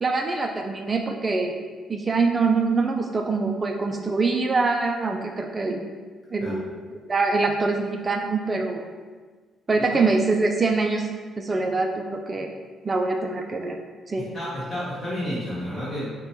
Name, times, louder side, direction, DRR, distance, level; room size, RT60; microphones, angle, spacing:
voice 1, 0.0-1.6 1.9-5.9 6.3-6.6 7.1-8.9 9.7-11.1 11.4-12.5 12.8-13.8 14.1-14.3, right 3 dB, 25° right, 3 dB, 0.4 m, -24 dB
voice 2, 14.2-16.1, equal, 25° left, -10 dB, 1.3 m, -31 dB
5.1 x 2.2 x 4.5 m, 1.4 s
cardioid pair, 120°, 0 cm